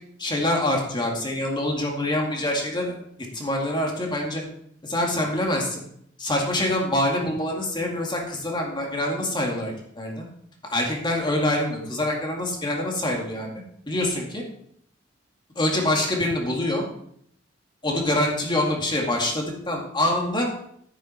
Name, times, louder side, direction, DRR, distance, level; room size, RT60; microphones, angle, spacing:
voice 1, 0.2-3.0 3.3-4.4 4.8-5.8 6.2-10.2 10.6-13.5 13.9-14.4 15.6-16.8 17.8-20.5, left 1 dB, 25° left, 0 dB, 2.2 m, -25 dB
10.0 x 9.1 x 4.5 m, 0.67 s
head